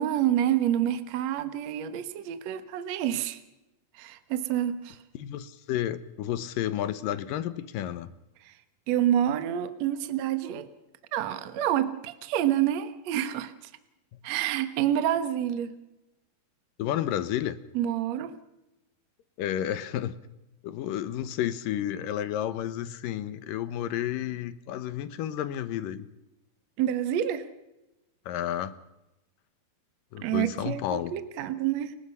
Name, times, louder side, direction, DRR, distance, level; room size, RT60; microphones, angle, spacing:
voice 1, 0.0-3.4 4.0-5.0 8.4-8.5 8.9-10.7 11.1-13.5 14.2-15.7 17.7-18.3 26.8-27.5 30.2-32.0, right 11 dB, 60° right, 2.1 m, -28 dB
voice 2, 5.2-8.1 16.8-17.6 19.4-20.2 20.6-26.1 28.3-28.7 30.1-31.5, left 11 dB, 75° left, 2.7 m, -31 dB
30.0 x 17.0 x 5.6 m
omnidirectional pair, 4.1 m